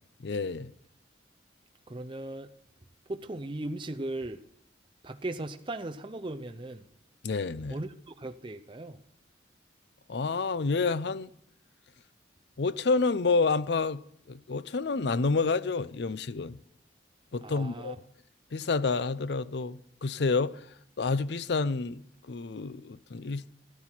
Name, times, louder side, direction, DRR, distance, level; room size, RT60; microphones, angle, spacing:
voice 1, 0.2-0.7 7.2-7.8 10.1-11.3 12.6-14.0 14.3-16.6 17.3-17.9 18.5-20.7 21.0-23.4, left 4 dB, 65° left, 0.5 m, -29 dB
voice 2, 1.9-2.5 3.1-4.4 5.0-6.8 7.7-7.9 8.2-9.0 17.4-18.0, right 2 dB, 25° right, 0.6 m, -37 dB
13.5 x 12.0 x 4.5 m
head